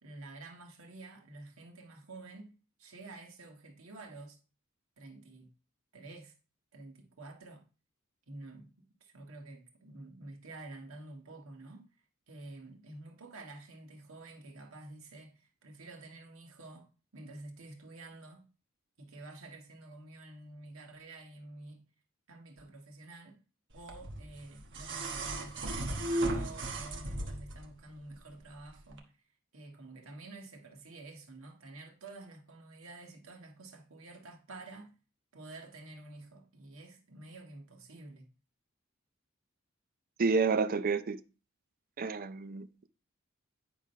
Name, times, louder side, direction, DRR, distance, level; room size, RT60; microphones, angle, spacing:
voice 1, 0.0-4.4 5.0-5.5 5.9-6.3 6.7-7.6 8.3-11.9 12.3-16.9 17.1-18.5 19.0-21.8 22.3-23.4 23.7-29.1 29.5-34.9 35.3-38.3, right 2 dB, 85° right, 1.6 m, -49 dB
sound 1, 23.9-27.7 28.9-29.0, right 1 dB, 60° right, 1.2 m, -35 dB
voice 2, 40.2-41.2 42.0-42.7, right 4 dB, 45° right, 0.5 m, -29 dB
9.3 x 3.8 x 5.3 m
head